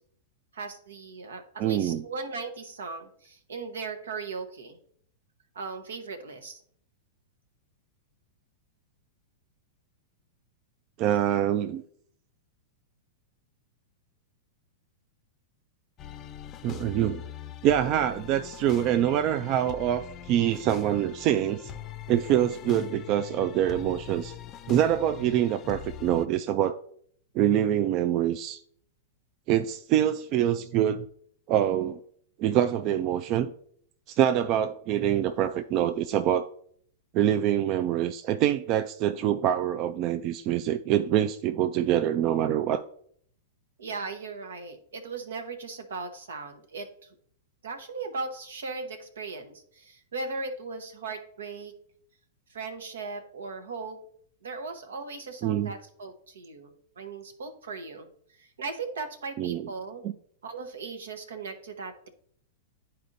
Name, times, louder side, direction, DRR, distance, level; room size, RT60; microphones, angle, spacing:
voice 1, 0.5-4.8 5.5-6.6 43.8-46.9 47.6-51.7 52.5-54.0 54.4-58.1 58.3-60.0 60.4-62.1, right 4 dB, 80° right, 0.9 m, -38 dB
voice 2, 1.6-2.0 11.0-11.8 16.6-17.2 17.6-21.7 22.1-24.3 24.7-26.8 27.3-28.6 29.5-31.1 31.5-32.0 32.4-33.5 34.1-36.5 37.1-42.8 55.4-55.7 59.4-59.7, right 11 dB, 45° right, 0.3 m, -25 dB
sound 1, 16.0-26.3, left 9 dB, 35° left, 0.5 m, -42 dB
11.0 x 4.2 x 2.6 m
hypercardioid pair, 115°, 0 cm